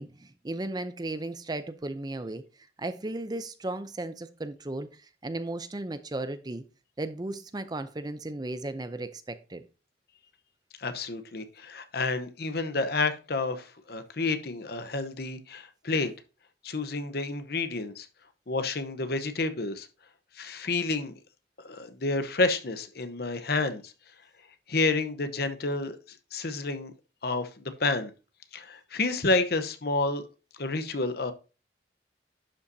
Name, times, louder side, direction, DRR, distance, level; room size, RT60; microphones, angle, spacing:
voice 1, 0.0-2.4 2.8-4.9 5.2-6.6 7.0-9.6, right 2 dB, 25° right, 0.5 m, -35 dB
voice 2, 10.8-16.1 16.6-18.1 18.5-19.9 20.4-21.1 21.6-23.9 24.7-26.0 26.3-26.9 27.2-28.1 28.5-30.2 30.6-31.3, left 3 dB, 60° left, 0.9 m, -29 dB
11.5 x 5.5 x 2.7 m
head